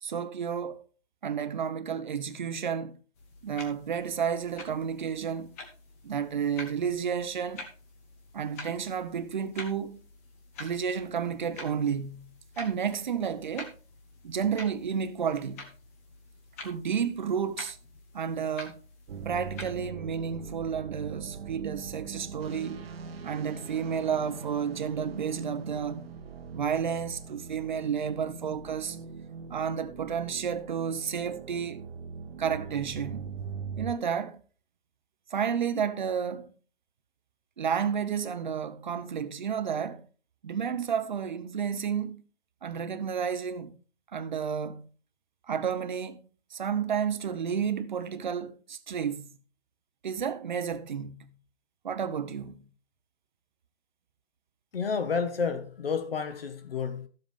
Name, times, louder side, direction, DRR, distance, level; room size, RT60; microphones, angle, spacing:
voice 1, 0.0-0.8 1.2-3.0 3.4-5.5 6.0-7.7 8.3-10.0 10.6-13.8 14.2-15.7 16.6-17.8 18.1-18.8 19.2-22.8 23.2-26.1 26.5-29.0 29.5-31.9 32.4-33.3 33.8-34.4 35.3-36.5 37.6-40.1 40.4-42.2 42.6-43.8 44.1-44.9 45.5-46.2 46.5-49.3 50.0-51.3 51.8-52.6, right 7 dB, 45° right, 0.8 m, -31 dB
sound 1, 3.1-19.9, left 3 dB, 15° left, 0.8 m, -48 dB
sound 2, 19.1-33.9, right 6 dB, 60° right, 1.1 m, -42 dB
voice 2, 54.7-57.1, left 5 dB, 60° left, 1.6 m, -30 dB
13.0 x 7.5 x 3.5 m
hypercardioid pair, 165°, 33 cm